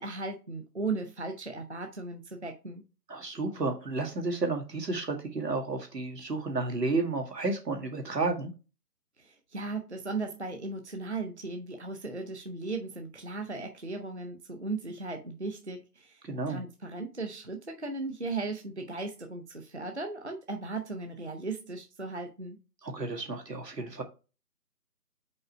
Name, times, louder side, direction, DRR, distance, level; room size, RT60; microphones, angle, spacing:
voice 1, 0.0-2.8 9.2-22.6, right 3 dB, 45° right, 5 dB, 0.7 m, -37 dB
voice 2, 3.1-8.5 16.2-16.6 22.8-24.0, right 3 dB, 75° right, 3 dB, 2.0 m, -32 dB
5.4 x 4.2 x 4.5 m, 0.31 s
figure-of-eight pair, 180°, 49 cm